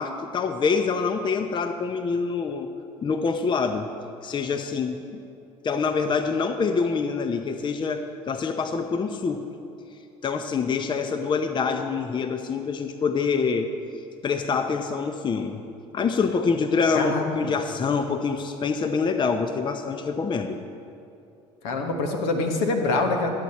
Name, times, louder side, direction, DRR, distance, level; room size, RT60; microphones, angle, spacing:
voice 1, 0.0-2.7 3.0-3.9 4.2-5.2 5.6-9.4 10.2-13.7 14.2-15.6 15.9-20.6, left 5 dB, 30° left, 7 dB, 0.6 m, -25 dB
voice 2, 16.9-17.5 21.6-23.3, left 3 dB, 70° left, 3 dB, 1.2 m, -25 dB
11.5 x 8.0 x 4.2 m, 2.7 s
hypercardioid pair, 65°, 16 cm